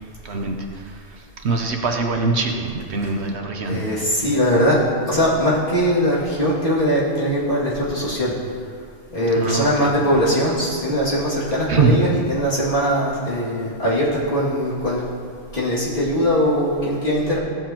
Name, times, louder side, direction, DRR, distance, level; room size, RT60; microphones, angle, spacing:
voice 1, 0.2-3.8 9.3-10.0 11.7-12.0, right 4 dB, 60° right, 3 dB, 1.0 m, -23 dB
voice 2, 3.6-8.3 9.1-15.0 15.5-17.4, equal, 40° left, -9 dB, 2.5 m, -21 dB
15.5 x 7.5 x 2.9 m, 2.3 s
omnidirectional pair, 1.3 m